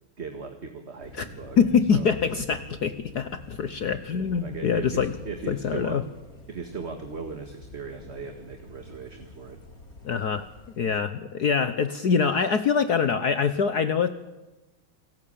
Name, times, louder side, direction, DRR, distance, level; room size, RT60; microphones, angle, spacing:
voice 1, 0.2-1.6 1.9-2.1 4.4-6.0 6.5-9.6, right 4 dB, 30° right, 5 dB, 1.9 m, -38 dB
Thunder, 1.0-11.0, left 1 dB, 40° left, 4.0 m, -46 dB
voice 2, 1.6-5.1 5.5-6.0 10.0-10.5 10.8-14.1, left 6 dB, 55° left, 11 dB, 1.4 m, -24 dB
28.5 x 19.0 x 8.7 m, 1.1 s
omnidirectional pair, 2.3 m